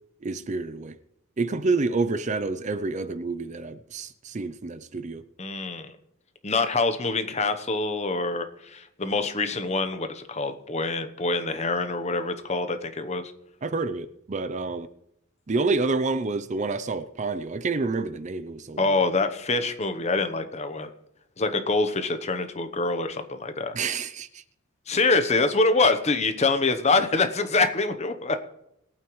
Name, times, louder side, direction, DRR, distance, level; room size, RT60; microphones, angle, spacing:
voice 1, 0.2-0.9 1.4-5.2 13.6-14.9 15.5-18.9 23.7-24.4, right 3 dB, 35° right, 0.5 m, -28 dB
voice 2, 5.4-6.0 6.4-13.3 18.8-20.9 21.4-23.8 24.9-28.4, left 3 dB, 30° left, 0.9 m, -25 dB
21.5 x 9.1 x 3.1 m
head